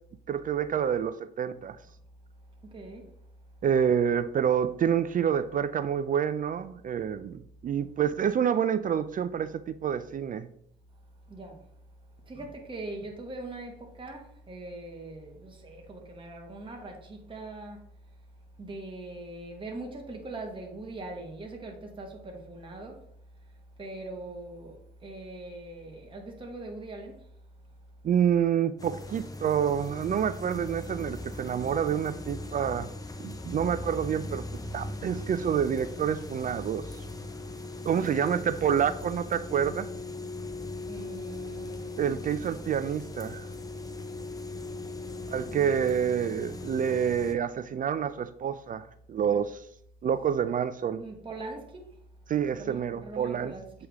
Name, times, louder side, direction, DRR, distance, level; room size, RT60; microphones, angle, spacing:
voice 1, 0.3-1.8 3.6-10.5 28.0-32.9 33.2-37.0 37.9-39.9 42.0-43.5 45.3-49.6 50.0-51.0 52.3-53.5, right 8 dB, 45° right, 0.4 m, -28 dB
voice 2, 2.7-3.1 11.3-11.7 12.3-17.8 18.6-23.0 23.8-27.3 38.0-38.3 40.9-42.7 44.5-46.0 50.9-52.0 52.5-53.7, right 2 dB, 25° right, 1.3 m, -42 dB
sound 1, 28.8-47.3, left 2 dB, 20° left, 0.7 m, -39 dB
7.8 x 3.5 x 3.5 m
cardioid pair, 90°, 20 cm